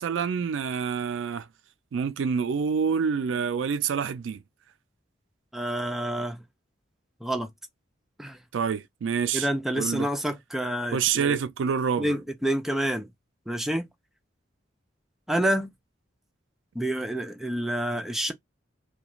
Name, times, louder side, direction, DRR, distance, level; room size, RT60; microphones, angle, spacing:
voice 1, 0.0-1.5 1.9-4.4 8.5-9.5 9.8-10.1 10.9-12.1, right 6 dB, 80° right, 0.4 m, -27 dB
voice 2, 5.5-6.4 7.2-7.5 8.2-8.4 9.3-11.4 12.0-13.1 13.5-13.9 15.3-15.7 16.7-18.3, right 1 dB, ahead, 0.4 m, -28 dB
2.4 x 2.2 x 2.9 m
head